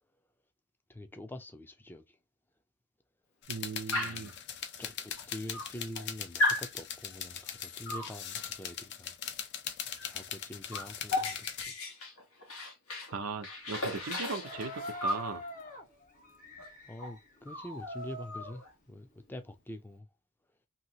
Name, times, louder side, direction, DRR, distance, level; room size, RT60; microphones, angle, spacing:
voice 1, 0.9-2.2 3.9-4.4 4.8-9.1 10.0-11.7 16.8-20.1, left 1 dB, 10° left, 0.5 m, -45 dB
sound 1, 3.4-11.6, left 8 dB, 55° left, 0.6 m, -41 dB
voice 2, 3.5-4.3 13.1-15.4, right 4 dB, 80° right, 0.6 m, -38 dB
Dog, 3.9-4.3 5.2-5.3 5.5-6.1 6.4-6.7 7.9-8.2 10.0-10.1 10.4-13.1 13.4-15.3 16.6-16.7 17.0-17.2 17.5-18.7, left 1 dB, 90° left, 1.2 m, -35 dB
sound 2, 13.6-18.3 18.6-19.7, left 2 dB, 40° left, 1.1 m, -46 dB
2.8 x 2.8 x 2.8 m
head